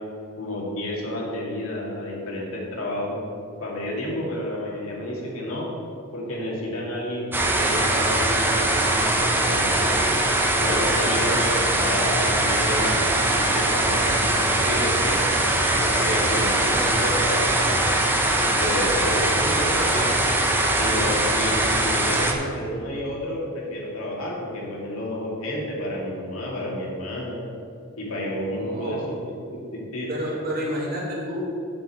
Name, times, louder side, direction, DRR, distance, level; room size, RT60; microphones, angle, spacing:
voice 1, 0.4-3.2 3.6-5.7 6.1-10.0 10.6-15.2 15.7-17.9 18.4-20.1 20.7-27.4 28.0-29.1 29.5-30.1, left 1 dB, 70° left, -4 dB, 2.4 m, -30 dB
sound 1, 7.3-22.3, right 1 dB, 10° right, 0.8 m, -21 dB
voice 2, 28.4-29.0 30.1-31.5, equal, 45° right, -5 dB, 2.5 m, -30 dB
7.7 x 5.6 x 7.6 m, 2.6 s
head